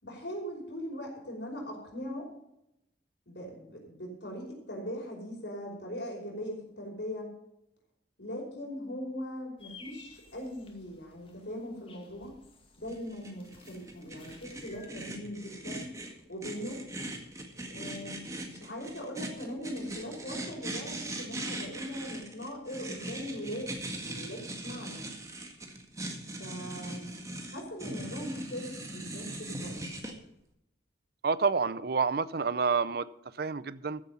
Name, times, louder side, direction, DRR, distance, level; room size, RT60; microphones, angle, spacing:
voice 1, 0.0-2.3 3.3-7.3 8.2-12.4 12.8-15.9 16.3-16.8 17.7-23.7 24.0-25.0 26.4-27.1 27.5-29.9, equal, 75° left, 0 dB, 5.3 m, -40 dB
nature beautiful bird calls, 9.6-14.9, left 4 dB, 30° left, 2.2 m, -56 dB
sound 1, 12.9-30.1, right 1 dB, 20° right, 1.8 m, -40 dB
voice 2, 31.2-33.1 33.4-34.0, right 5 dB, 55° right, 17 dB, 0.6 m, -28 dB
14.5 x 7.9 x 5.6 m, 0.82 s
head